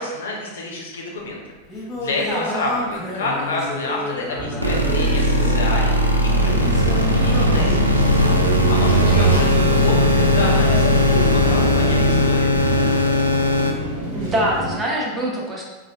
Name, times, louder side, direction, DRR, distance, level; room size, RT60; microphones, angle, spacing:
voice 1, 0.0-1.4 1.7-12.6, left 2 dB, 65° left, -1 dB, 0.6 m, -29 dB
Singing, 1.2-10.2, left 1 dB, 10° left, 0.9 m, -32 dB
sound 1, 4.3-14.8, equal, 55° right, 0.8 m, -26 dB
sound 2, 4.6-13.7, equal, 90° right, 0.3 m, -18 dB
voice 2, 8.9-9.4 14.1-15.6, equal, 15° right, -3 dB, 0.7 m, -25 dB
4.0 x 2.3 x 2.3 m, 1.3 s
figure-of-eight pair, 90°, 0 cm